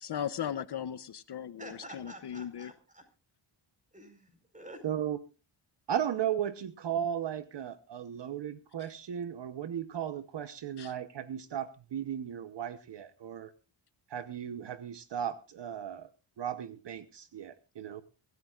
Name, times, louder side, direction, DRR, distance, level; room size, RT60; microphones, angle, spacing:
voice 1, 0.0-2.7 8.8-8.9 10.8-10.9, left 9 dB, 55° left, 14 dB, 0.7 m, -37 dB
voice 2, 1.6-3.0 3.9-4.8, right 1 dB, 15° right, 6 dB, 4.7 m, -49 dB
voice 3, 4.8-5.2 5.9-13.5 14.1-16.1 16.4-18.0, right 9 dB, 60° right, 11 dB, 1.0 m, -36 dB
24.0 x 14.5 x 2.4 m, 0.32 s
wide cardioid pair, 125°, 49 cm